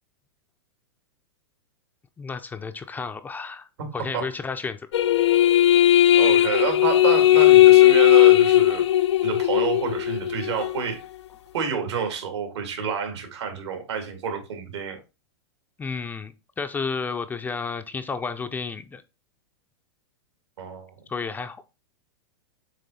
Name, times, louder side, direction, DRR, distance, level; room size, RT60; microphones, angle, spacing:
voice 1, 2.2-3.7 3.9-4.9 15.8-19.0 21.1-21.6, left 5 dB, 10° left, 0.4 m, -32 dB
voice 2, 3.8-4.3 6.1-8.8 9.2-11.0 11.5-15.0 20.6-20.9, right 6 dB, 75° right, 2.2 m, -29 dB
sound 1, 4.9-10.8, left 13 dB, 80° left, 0.4 m, -17 dB
7.4 x 3.1 x 4.1 m
hypercardioid pair, 125°, 14 cm